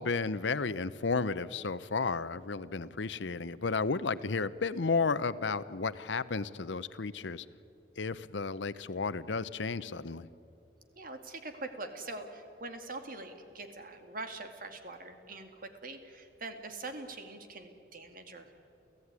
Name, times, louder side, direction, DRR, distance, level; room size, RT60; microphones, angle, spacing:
voice 1, 0.0-7.5 8.0-10.3, left 4 dB, 80° left, 15 dB, 0.8 m, -33 dB
voice 2, 11.0-18.5, right 2 dB, 50° right, 6 dB, 2.3 m, -43 dB
30.0 x 15.0 x 9.7 m, 2.7 s
head